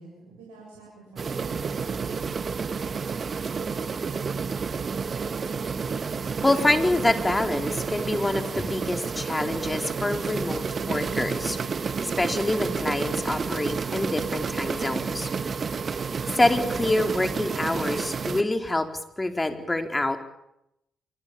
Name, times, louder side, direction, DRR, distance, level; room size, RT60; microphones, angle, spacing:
voice 1, 0.0-2.5, right 3 dB, 85° right, -3 dB, 7.6 m, -48 dB
sound 1, 1.2-18.4, right 5 dB, 50° right, 1.5 m, -30 dB
voice 2, 6.4-15.5 16.3-18.9 19.2-20.2, left 2 dB, 20° left, 6 dB, 4.2 m, -26 dB
26.0 x 23.5 x 7.2 m, 0.81 s
hypercardioid pair, 45°, 0 cm